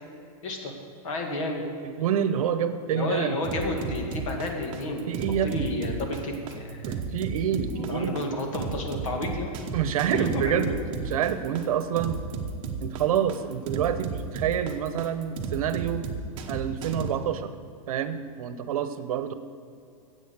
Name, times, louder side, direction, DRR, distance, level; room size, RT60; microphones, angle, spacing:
voice 1, 0.4-0.7 1.0-1.7 2.9-5.1 5.4-7.2 7.7-9.5 10.1-10.8, left 2 dB, 60° left, 3 dB, 2.2 m, -31 dB
voice 2, 1.8-3.4 5.1-5.7 6.9-8.2 9.7-10.7 11.0-12.2 12.8-16.1 16.5-17.5 17.9-19.3, right 9 dB, 70° right, 11 dB, 0.9 m, -27 dB
sound 1, 3.4-17.1, right 5 dB, 25° right, 0.9 m, -34 dB
10.5 x 8.0 x 8.0 m, 2.4 s
supercardioid pair, 170°, 19 cm